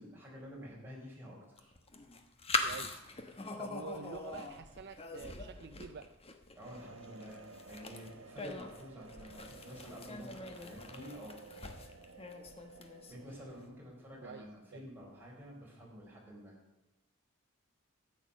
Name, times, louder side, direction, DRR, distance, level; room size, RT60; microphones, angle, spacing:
voice 1, 0.0-1.7 6.5-11.4 13.1-16.6, equal, 10° right, -4 dB, 4.3 m, -50 dB
sound 1, 1.6-13.3, left 3 dB, 30° left, 1.1 m, -42 dB
voice 2, 2.6-3.0 3.6-6.1 14.2-14.5 14.7-14.8, right 5 dB, 55° right, 10 dB, 0.5 m, -47 dB
sound 2, 6.6-13.7, right 3 dB, 75° right, 1.1 m, -54 dB
13.0 x 9.2 x 6.3 m, 1.1 s
head